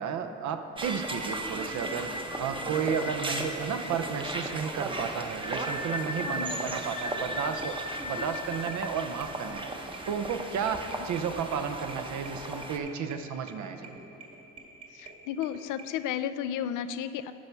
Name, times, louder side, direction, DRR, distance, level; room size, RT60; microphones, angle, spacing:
voice 1, 0.0-2.1 2.4-9.7 10.1-14.0, right 7 dB, 70° right, 8 dB, 0.7 m, -33 dB
sound 1, 0.8-12.8, right 1 dB, 15° right, 0.8 m, -35 dB
sound 2, 5.1-15.8, right 4 dB, 45° right, 2.0 m, -49 dB
voice 2, 6.2-6.6 14.9-17.3, left 9 dB, 85° left, 12 dB, 0.5 m, -33 dB
11.5 x 5.6 x 4.6 m, 2.9 s
cardioid pair, 90°, 30 cm